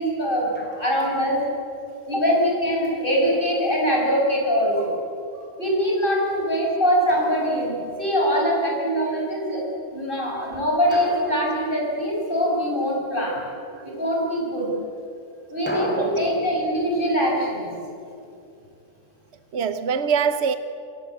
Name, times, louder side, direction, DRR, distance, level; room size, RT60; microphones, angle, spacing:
voice 1, 0.0-1.4 2.0-5.0 5.6-9.7 9.9-13.4 13.8-14.7 15.5-17.7, equal, 45° left, 7.8 m, -23 dB
Drum, 0.5-1.2 3.2-4.3 7.1-8.2 10.9-12.6 15.7-18.6, equal, 10° left, 4.8 m, -37 dB
voice 2, 15.9-16.2 19.5-20.6, right 6 dB, 60° right, 1.2 m, -24 dB
28.5 x 23.0 x 8.5 m
omnidirectional pair, 1.3 m